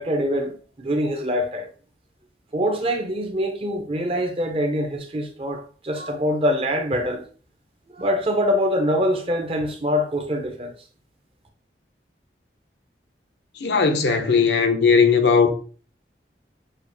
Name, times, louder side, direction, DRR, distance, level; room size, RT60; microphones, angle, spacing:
voice 1, 0.0-1.7 2.5-7.2 7.9-10.7, equal, 30° right, 0.7 m, -24 dB
voice 2, 13.6-15.5, left 5 dB, 75° left, 0.7 m, -18 dB
6.3 x 2.4 x 2.7 m
head